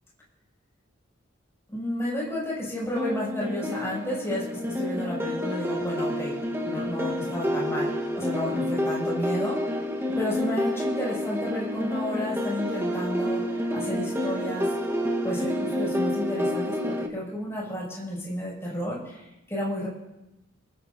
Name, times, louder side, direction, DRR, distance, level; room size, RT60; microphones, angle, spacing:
voice 1, 1.7-6.3 6.6-9.8 10.2-14.7 15.2-19.9, equal, 15° left, -6 dB, 6.2 m, -32 dB
sound 1, 3.0-17.1, left 1 dB, 10° right, 1.2 m, -29 dB
28.5 x 12.0 x 2.7 m, 0.95 s
head